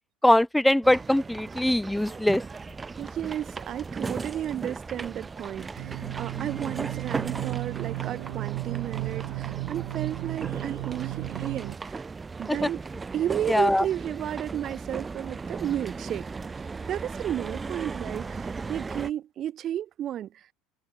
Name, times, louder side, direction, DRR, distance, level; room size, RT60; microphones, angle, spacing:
voice 1, 0.2-2.4 12.6-12.7 13.5-13.8, left 1 dB, 5° left, 0.3 m, -22 dB
sound 1, 0.8-19.1, right 4 dB, 15° right, 3.3 m, -37 dB
voice 2, 3.0-12.0 12.4-12.8 13.1-16.3 16.9-20.5, right 11 dB, 40° right, 1.5 m, -33 dB
sound 2, 5.8-11.8, right 38 dB, 80° right, 2.3 m, -34 dB
cardioid pair, 135°, 0 cm